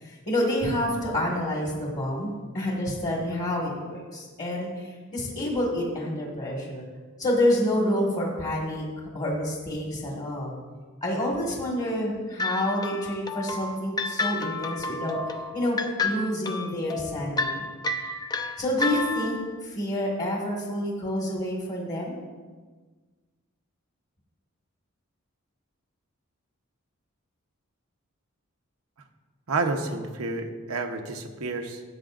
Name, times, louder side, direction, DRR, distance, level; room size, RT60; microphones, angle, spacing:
voice 1, 0.0-6.8 7.2-10.6 11.0-15.2 15.5-17.7 18.6-22.1, left 1 dB, 35° left, -3 dB, 1.6 m, -28 dB
sound 1, 12.4-19.5, left 3 dB, 20° left, 0.5 m, -31 dB
voice 2, 29.5-31.8, right 3 dB, 85° right, 4 dB, 1.0 m, -30 dB
16.0 x 7.9 x 2.5 m, 1.4 s
head